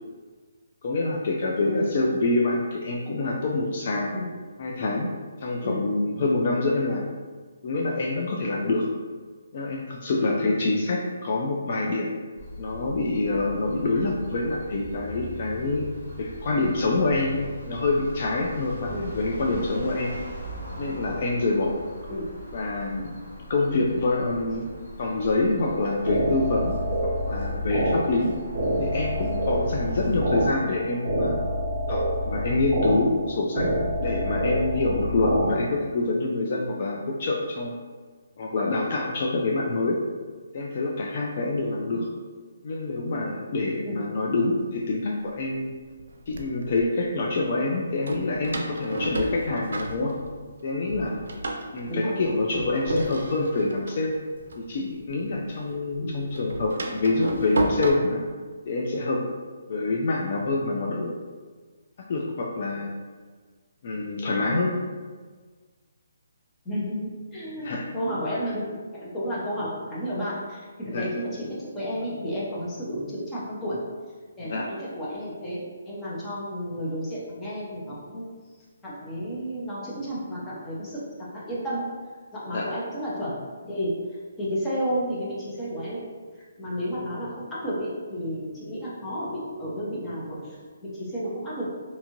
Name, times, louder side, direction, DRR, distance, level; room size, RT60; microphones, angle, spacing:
voice 1, 0.8-4.1 4.6-5.1 5.4-7.0 7.6-8.8 9.5-12.1 12.6-15.9 16.2-20.2 20.8-21.8 22.5-23.2 23.5-24.7 25.0-28.3 28.8-31.4 31.9-37.8 38.4-40.0 40.5-42.1 42.6-45.7 46.3-50.2 50.6-51.2 51.7-54.2 54.6-58.2 58.7-59.2 59.7-61.2 62.0-62.9 63.8-64.8 67.6-67.9 70.9-71.1 74.4-74.7 82.5-82.7, left 2 dB, 45° left, -1 dB, 0.3 m, -26 dB
sound 1, 12.4-30.5, equal, 70° left, 1.2 m, -41 dB
sound 2, 25.7-35.5, equal, 20° right, 0.9 m, -27 dB
Door, 44.9-45.0 45.7-46.8 48.0-50.6 50.9-55.4 55.7-57.9, right 2 dB, 75° right, 0.4 m, -32 dB
voice 2, 66.6-68.7 68.9-71.5 71.7-73.8 74.4-78.3 78.8-81.0 81.3-81.8 82.3-83.3 83.6-83.9 84.4-86.0 86.6-90.6 90.9-91.7, equal, 10° left, -8 dB, 0.7 m, -32 dB
2.6 x 2.5 x 2.9 m, 1.5 s
hypercardioid pair, 160°, 0 cm